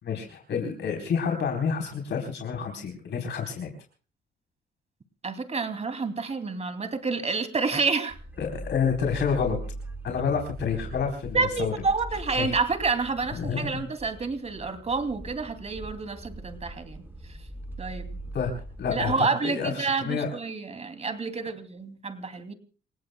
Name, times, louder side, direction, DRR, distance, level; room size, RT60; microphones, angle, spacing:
voice 1, 0.0-3.7 8.4-9.6 10.0-11.7 12.3-12.5 13.3-13.7 18.3-18.5 18.8-20.3, left 6 dB, 65° left, 2 dB, 4.1 m, -29 dB
voice 2, 5.2-8.2 11.3-17.0 17.8-18.2 18.9-22.5, right 4 dB, 35° right, 8 dB, 2.8 m, -29 dB
sound 1, 8.1-19.2, right 1 dB, 10° right, 1.8 m, -41 dB
28.0 x 17.5 x 2.3 m, 0.39 s
cardioid pair, 90°, 20 cm